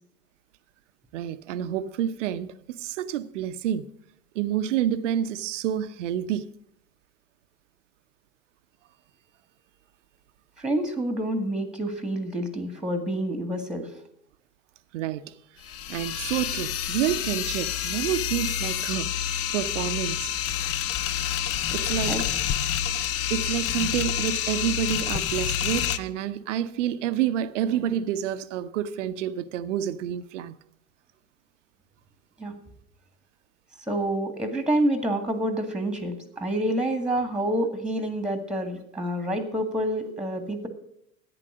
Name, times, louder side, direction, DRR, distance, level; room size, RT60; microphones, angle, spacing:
voice 1, 1.1-3.9 4.3-6.5 14.9-15.3 15.9-19.1 19.5-20.3 21.7-22.2 23.3-30.6, right 10 dB, 70° right, 0.7 m, -28 dB
voice 2, 10.6-13.9 22.1-22.2 32.4-32.5 33.9-40.7, right 1 dB, ahead, 1.9 m, -28 dB
sound 1, 15.6-26.0, left 10 dB, 40° left, 0.7 m, -28 dB
11.0 x 9.1 x 6.2 m
figure-of-eight pair, 75°, 38 cm